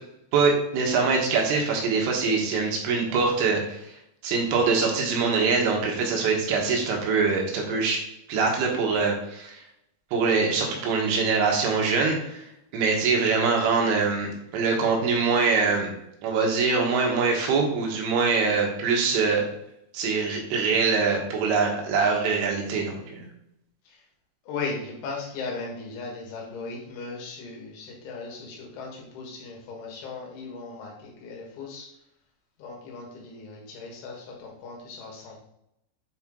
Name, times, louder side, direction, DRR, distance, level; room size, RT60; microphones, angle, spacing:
voice 1, 0.3-3.8 4.2-8.0 8.3-9.6 10.1-12.4 12.7-14.3 14.5-15.9 16.2-19.5 19.9-23.2, right 4 dB, 85° right, 0 dB, 4.0 m, -23 dB
voice 2, 24.5-31.9 32.6-35.4, left 4 dB, 75° left, -1 dB, 4.0 m, -37 dB
8.7 x 4.5 x 3.7 m, 0.79 s
omnidirectional pair, 5.6 m